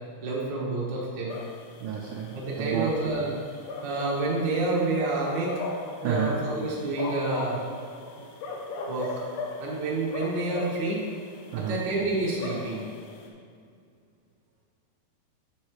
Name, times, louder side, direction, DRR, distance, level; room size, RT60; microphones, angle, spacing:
voice 1, 0.2-1.4 2.3-3.3 3.8-5.6 6.0-7.6 8.9-9.2 9.6-11.1 11.6-12.8, right 2 dB, 55° right, -5 dB, 1.2 m, -28 dB
sound 1, 1.3-13.3, left 3 dB, 85° left, 1.7 m, -39 dB
voice 2, 1.8-2.9 6.0-6.3 11.5-11.8, right 8 dB, 85° right, -2 dB, 1.8 m, -30 dB
8.6 x 7.3 x 3.2 m, 2.2 s
omnidirectional pair, 4.5 m